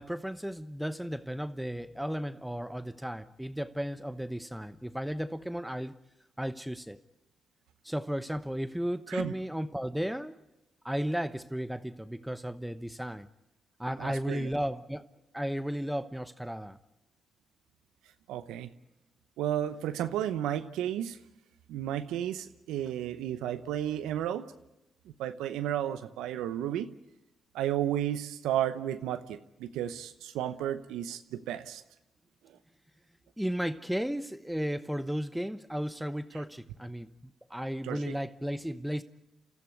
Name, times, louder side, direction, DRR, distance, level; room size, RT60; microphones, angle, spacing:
voice 1, 0.0-6.0 6.4-7.0 7.8-10.4 10.8-13.3 13.8-15.1 15.3-16.8 33.4-37.1 37.5-39.0, equal, 5° right, 1.0 m, -34 dB
voice 2, 14.0-14.5 18.3-18.7 19.4-21.2 21.7-24.5 25.1-26.9 27.5-31.8 37.8-38.1, right 11 dB, 85° right, 0.8 m, -33 dB
28.5 x 14.0 x 9.5 m
supercardioid pair, 50°, 0 cm